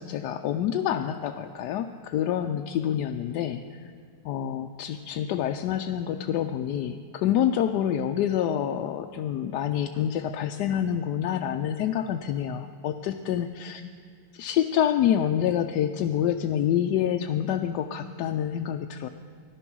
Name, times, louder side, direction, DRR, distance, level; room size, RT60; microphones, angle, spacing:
voice 1, 0.0-3.9 4.2-13.8 14.3-19.1, left 10 dB, 90° left, 5 dB, 1.2 m, -27 dB
14.5 x 11.5 x 6.1 m, 2.1 s
omnidirectional pair, 1.7 m